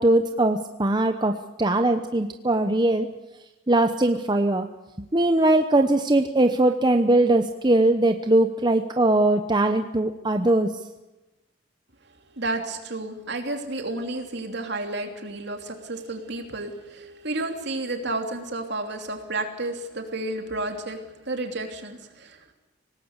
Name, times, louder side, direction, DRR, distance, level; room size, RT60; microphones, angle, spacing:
voice 1, 0.0-3.1 3.7-4.7 5.1-10.7, right 2 dB, 25° right, 7 dB, 0.9 m, -21 dB
voice 2, 12.3-21.0 21.2-22.5, right 2 dB, 60° right, 4 dB, 3.2 m, -31 dB
25.5 x 18.5 x 8.1 m, 1.1 s
head